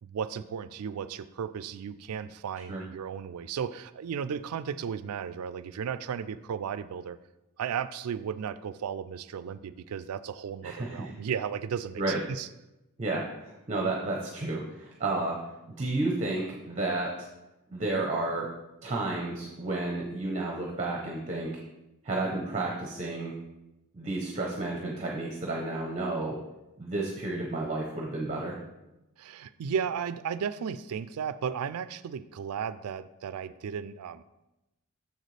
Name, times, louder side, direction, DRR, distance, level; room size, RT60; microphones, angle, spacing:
voice 1, 0.0-7.2 7.6-12.5 29.2-34.2, right 7 dB, 85° right, 14 dB, 0.4 m, -35 dB
voice 2, 10.6-11.1 12.0-12.2 13.0-15.4 15.7-17.1 17.7-18.5 18.8-21.5 22.0-23.3 23.9-26.4 26.8-28.6, right 2 dB, 30° right, -1 dB, 0.8 m, -31 dB
6.9 x 6.4 x 3.3 m, 0.94 s
head